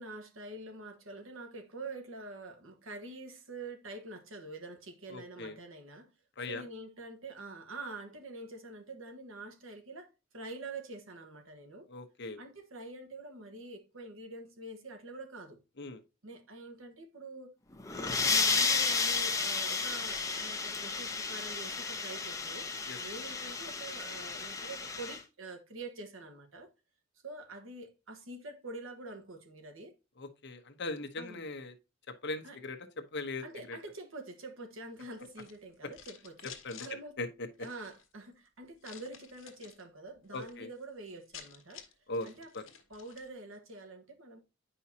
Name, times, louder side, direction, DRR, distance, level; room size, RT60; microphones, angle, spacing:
voice 1, 0.0-6.1 6.5-11.9 12.4-15.6 16.2-17.5 17.9-26.7 27.2-29.9 31.2-31.4 32.4-32.6 33.4-36.5 36.8-37.2 37.6-41.8 42.2-42.5 42.9-44.4, right 2 dB, 80° right, 1.4 m, -46 dB
voice 2, 5.1-5.6 6.4-6.6 11.9-12.4 15.8-16.0 22.9-23.0 30.2-31.7 32.1-32.8 33.1-33.8 36.6-36.9 37.2-37.5 40.3-40.7 42.1-42.3 42.5-42.6, left 2 dB, 60° left, 1.0 m, -39 dB
sound 1, 17.7-25.2, left 4 dB, 15° left, 0.8 m, -32 dB
sound 2, 35.1-36.9 37.5-38.1 38.8-39.8 40.2-40.6 40.8-40.9 41.1-43.3, left 8 dB, 75° left, 1.4 m, -52 dB
9.5 x 5.5 x 2.8 m
head